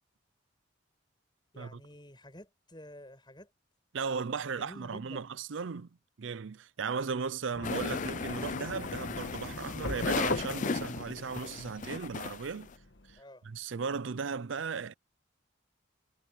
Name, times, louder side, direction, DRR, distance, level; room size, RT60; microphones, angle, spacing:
voice 1, 1.5-3.5 4.6-5.3 13.2-13.4, left 1 dB, 20° left, 8.0 m, -50 dB
voice 2, 3.9-5.9 6.2-12.7 13.1-13.2 13.4-14.9, right 5 dB, 70° right, 0.5 m, -36 dB
sound 1, 7.5-13.2, left 2 dB, 65° left, 1.4 m, -40 dB
sound 2, 7.6-12.7, left 5 dB, 40° left, 0.4 m, -36 dB
head